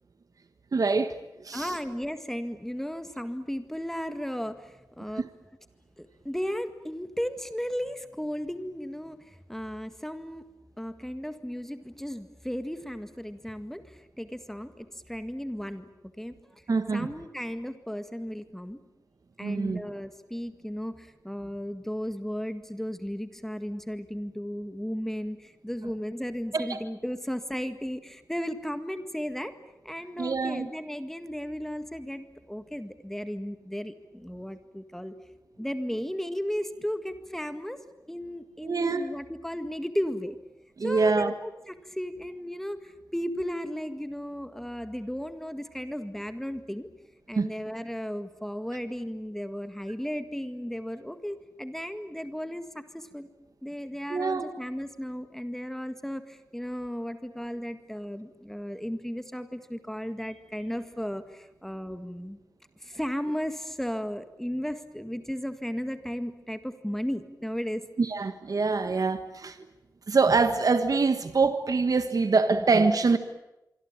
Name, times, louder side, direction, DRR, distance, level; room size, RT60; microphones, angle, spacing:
voice 1, 0.7-1.1 1.4-1.8 5.1-5.3 16.7-17.1 19.4-19.8 26.5-26.8 30.2-30.7 38.6-39.1 40.8-41.3 47.3-47.5 54.1-54.5 68.0-69.6 70.1-73.2, right 4 dB, 60° right, 9 dB, 1.4 m, -25 dB
voice 2, 1.5-5.3 6.0-9.2 9.5-10.5 10.8-15.9 16.2-16.3 16.9-18.8 19.4-29.5 29.8-35.1 35.6-37.8 38.1-40.4 40.8-46.9 47.3-53.3 53.6-62.4 62.8-67.8, equal, 5° left, 9 dB, 1.8 m, -35 dB
25.0 x 25.0 x 8.8 m, 0.93 s
wide cardioid pair, 90°, 7 cm